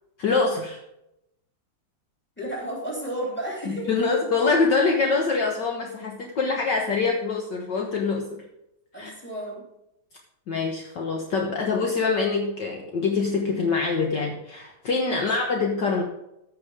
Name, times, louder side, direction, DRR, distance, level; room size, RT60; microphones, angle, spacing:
voice 1, 0.2-0.8 3.7-8.4 9.0-9.1 10.5-16.0, left 4 dB, 55° left, 1 dB, 1.8 m, -24 dB
voice 2, 2.4-3.9 8.9-9.6 15.0-15.3, right 1 dB, 5° left, -2 dB, 3.4 m, -33 dB
14.0 x 6.7 x 5.0 m, 0.85 s
omnidirectional pair, 2.4 m